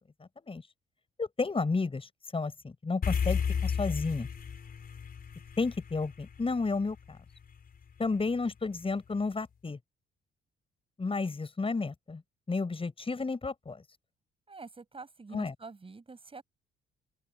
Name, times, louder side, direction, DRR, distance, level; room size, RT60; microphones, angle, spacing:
voice 1, 1.2-4.3 5.6-7.2 8.0-9.8 11.0-12.2 12.5-13.8 15.3-15.5, left 4 dB, 25° left, 7.7 m, -32 dB
sound 1, 3.0-7.5, left 7 dB, 50° left, 4.0 m, -33 dB
voice 2, 14.5-16.4, right 4 dB, 30° right, 7.0 m, -46 dB
open air
cardioid pair, 90°, 20 cm